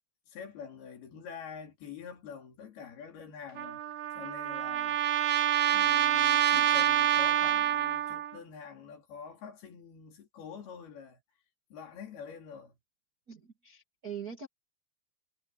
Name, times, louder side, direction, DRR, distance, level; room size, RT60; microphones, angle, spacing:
voice 1, 0.3-3.8 4.2-5.0 5.7-11.2 11.7-12.8, left 7 dB, 70° left, 5.3 m, -46 dB
Trumpet, 3.6-8.4, right 11 dB, 65° right, 2.6 m, -27 dB
voice 2, 13.3-14.5, right 7 dB, 35° right, 1.5 m, -42 dB
omnidirectional pair, 4.6 m